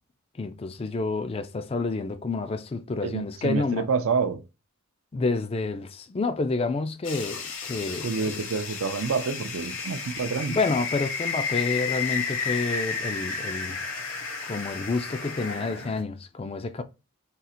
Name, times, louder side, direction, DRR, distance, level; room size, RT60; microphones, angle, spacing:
voice 1, 0.3-3.9 5.1-8.4 10.5-13.9 14.4-16.8, left 3 dB, 25° left, 0.3 m, -29 dB
voice 2, 3.0-4.4 8.0-10.6, right 5 dB, 65° right, 0.4 m, -28 dB
sound 1, 7.0-16.0, left 5 dB, 60° left, 0.9 m, -32 dB
3.8 x 2.4 x 4.2 m
head